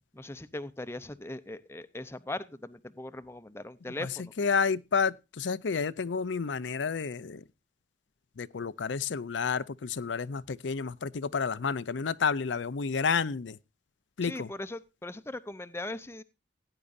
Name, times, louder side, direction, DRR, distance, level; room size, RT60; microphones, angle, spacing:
voice 1, 0.1-4.3 14.2-16.2, left 2 dB, 15° left, 0.7 m, -39 dB
voice 2, 4.4-7.4 8.4-13.6 14.2-14.5, left 5 dB, 85° left, 0.6 m, -30 dB
17.0 x 9.8 x 2.6 m
head